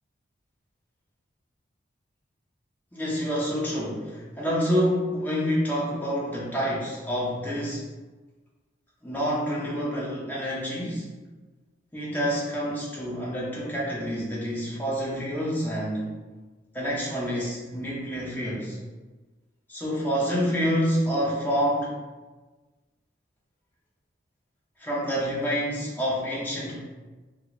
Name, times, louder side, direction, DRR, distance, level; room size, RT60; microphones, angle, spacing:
voice 1, 2.9-7.9 9.0-11.1 11.9-16.1 16.7-18.8 19.7-22.0 24.8-26.8, equal, 10° left, -6 dB, 0.6 m, -28 dB
2.9 x 2.8 x 2.4 m, 1.2 s
head